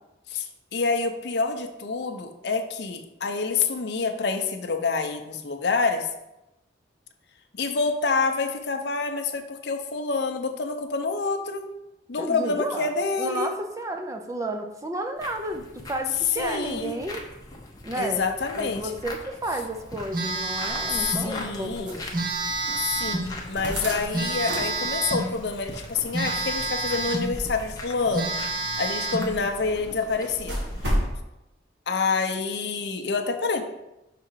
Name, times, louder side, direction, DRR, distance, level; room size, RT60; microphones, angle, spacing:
voice 1, 0.3-6.1 7.5-11.7 12.1-13.5 16.4-17.0 18.0-18.9 20.9-22.0 22.8-28.3 28.8-30.6 31.9-33.6, left 4 dB, 65° left, 6 dB, 0.6 m, -27 dB
voice 2, 12.2-12.9 13.2-17.2 17.8-18.2 18.5-22.0, right 1 dB, 15° right, 4 dB, 0.5 m, -32 dB
sound 1, 15.2-30.9, left 2 dB, 20° left, 0.8 m, -42 dB
Telephone, 20.1-21.3 22.1-23.3 24.1-25.3 26.1-27.3 27.7-27.8 28.1-29.3, right 2 dB, 45° right, 0.9 m, -28 dB
sound 2, 20.7-31.2, equal, 75° right, 1.4 m, -35 dB
6.0 x 3.7 x 4.6 m, 0.92 s
head